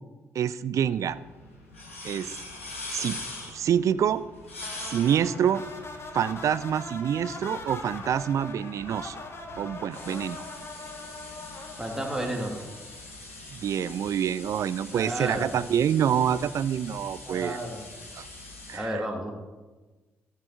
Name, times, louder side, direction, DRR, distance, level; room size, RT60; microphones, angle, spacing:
voice 1, 0.3-1.2 2.0-2.3 2.9-3.2 3.5-4.2 4.8-5.6 6.1-9.2 9.6-10.4 13.5-17.6 18.1-18.3 18.7-19.1, right 9 dB, 50° right, 15 dB, 0.5 m, -26 dB
sound 1, 0.8-18.8, left 2 dB, 85° left, 1.4 m, -43 dB
sound 2, 4.6-13.0, left 3 dB, 40° left, 1.9 m, -41 dB
voice 2, 11.8-12.5 14.9-15.6 17.3-17.8 18.7-19.3, right 1 dB, 10° right, 0 dB, 2.9 m, -32 dB
14.5 x 7.4 x 4.7 m, 1.3 s
figure-of-eight pair, 40°, 7 cm